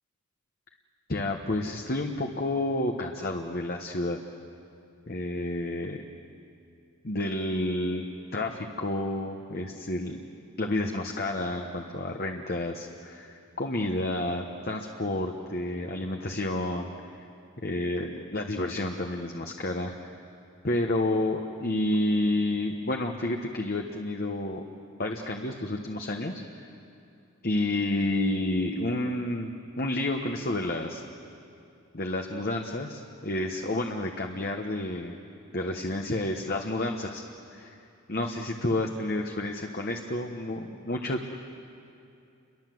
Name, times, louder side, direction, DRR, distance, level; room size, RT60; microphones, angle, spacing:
voice 1, 1.1-4.2 5.1-6.0 7.0-8.1 8.3-10.3 10.6-16.9 17.6-20.2 20.6-24.6 25.0-26.4 27.4-29.5 29.8-31.0 31.9-35.2 35.5-37.2 37.5-37.8 38.1-41.4, left 1 dB, 45° left, 2 dB, 1.2 m, -30 dB
29.5 x 23.0 x 7.8 m, 2.6 s
head